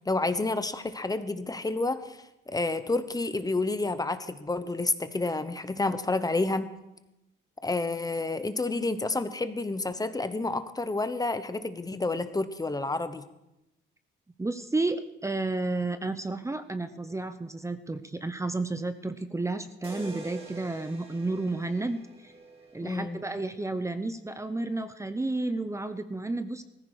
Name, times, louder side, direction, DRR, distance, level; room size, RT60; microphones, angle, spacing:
voice 1, 0.1-2.2 2.5-6.7 7.6-13.2 22.8-23.2, left 2 dB, 20° left, 12 dB, 1.0 m, -29 dB
voice 2, 14.4-22.3 22.7-26.6, right 2 dB, 15° right, 10 dB, 0.8 m, -31 dB
sound 1, 19.8-23.9, right 2 dB, 30° right, 3.2 m, -47 dB
17.5 x 15.0 x 4.9 m, 0.91 s
cardioid pair, 90°, 20 cm